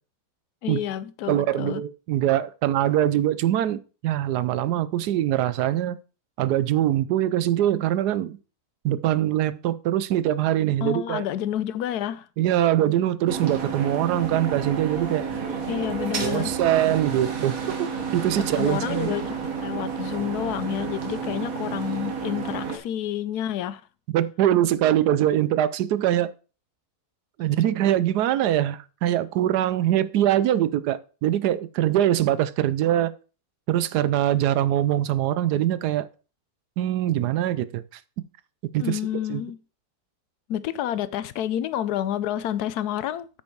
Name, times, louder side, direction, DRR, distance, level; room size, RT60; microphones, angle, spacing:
voice 1, 0.6-1.8 10.8-12.3 15.7-16.5 18.6-23.8 38.8-39.6 40.5-43.3, left 11 dB, 80° left, 1.1 m, -29 dB
voice 2, 1.3-6.0 6.4-8.4 8.8-11.2 12.4-15.2 16.2-19.1 24.1-26.3 27.4-33.1 33.7-36.1 36.8-37.8 38.7-39.0 39.3-39.4, right 12 dB, 85° right, 1.2 m, -23 dB
sound 1, 13.3-22.8, right 5 dB, 60° right, 1.9 m, -31 dB
8.6 x 6.1 x 4.6 m
omnidirectional pair, 1.7 m